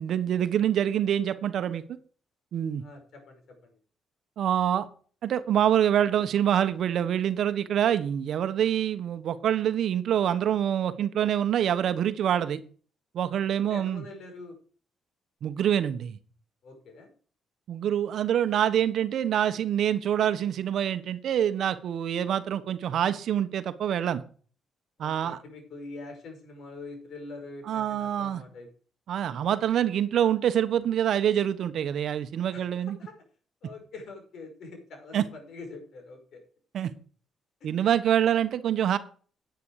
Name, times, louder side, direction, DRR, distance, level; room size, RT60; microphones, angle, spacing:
voice 1, 0.0-1.8 2.5-2.8 4.4-4.9 5.2-12.6 13.1-14.0 15.4-16.2 17.7-24.2 25.0-25.4 27.7-28.4 29.1-33.0 35.1-35.3 36.7-36.9 37.6-39.0, right 10 dB, 70° right, 1.1 m, -26 dB
voice 2, 2.8-3.7 13.6-14.5 16.6-17.1 25.0-28.7 32.5-32.6 33.0-33.1 33.6-36.4 37.6-37.7, left 3 dB, 65° left, 5.6 m, -44 dB
10.0 x 9.2 x 4.8 m
cardioid pair, 90°, 0 cm